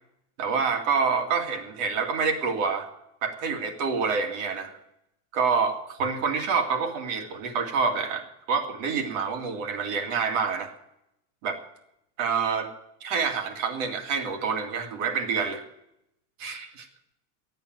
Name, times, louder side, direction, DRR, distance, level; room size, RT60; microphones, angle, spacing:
voice 1, 0.4-2.9 3.2-4.8 5.3-10.7 11.4-11.6 12.2-12.7 13.0-15.6 16.4-16.9, right 5 dB, 55° right, 6 dB, 2.3 m, -27 dB
13.0 x 8.9 x 9.0 m, 0.81 s
supercardioid pair, 175°, 46 cm